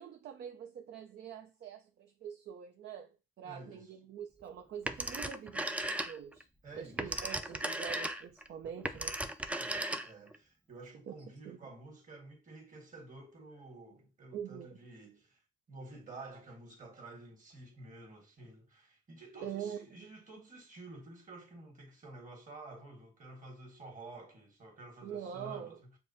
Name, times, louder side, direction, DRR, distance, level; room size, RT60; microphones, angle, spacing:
voice 1, 0.0-6.5 6.8-9.2 11.1-11.2 11.5-11.6 14.3-14.8 19.4-19.8 25.0-25.8, right 8 dB, 60° right, 0.5 m, -44 dB
voice 2, 3.4-3.9 6.6-7.2 9.6-15.4 15.7-26.0, right 2 dB, 40° right, 1.6 m, -51 dB
Telephone, 4.9-6.4 6.8-10.4, right 1 dB, 5° right, 0.4 m, -36 dB
6.6 x 2.3 x 2.7 m
cardioid pair, 90°, 20 cm